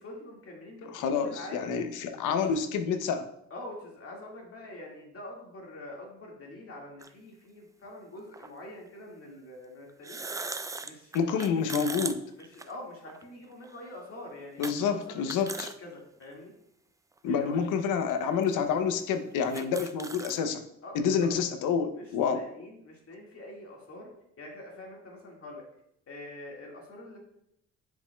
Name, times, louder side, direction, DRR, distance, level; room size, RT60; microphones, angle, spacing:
voice 1, 0.0-1.8 2.2-2.8 3.5-10.3 10.8-11.7 12.4-15.2 15.5-16.5 17.2-17.6 20.8-21.3 22.0-24.1 24.4-25.6 26.1-27.2, left 1 dB, 50° left, -2 dB, 1.9 m, -45 dB
voice 2, 0.9-3.3 11.1-12.2 14.6-15.7 17.2-20.6 20.9-22.4, left 6 dB, 85° left, 8 dB, 0.7 m, -28 dB
sound 1, 7.0-7.1 8.3-8.5 9.9-13.2 13.6-13.7 14.6-14.8 15.1-15.8 16.2-16.3 17.2-17.3 18.1-18.2 18.4-18.5 19.0-19.1 19.3-20.4, right 3 dB, 10° right, 0.3 m, -38 dB
10.5 x 5.2 x 2.2 m, 0.76 s
cardioid pair, 90°, 30 cm